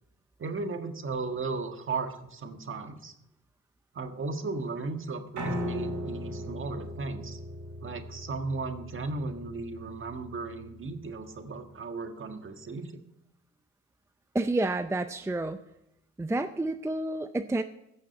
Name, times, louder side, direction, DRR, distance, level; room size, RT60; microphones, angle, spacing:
voice 1, 0.4-3.1 3.9-7.4 7.8-13.0, right 3 dB, 40° right, 6 dB, 1.6 m, -35 dB
Piano, 5.4-11.5, equal, 75° right, 3.6 m, -38 dB
voice 2, 14.3-15.6 16.2-17.6, right 2 dB, 10° right, 10 dB, 0.5 m, -29 dB
15.5 x 6.4 x 7.7 m, 0.85 s
cardioid pair, 90°, 30 cm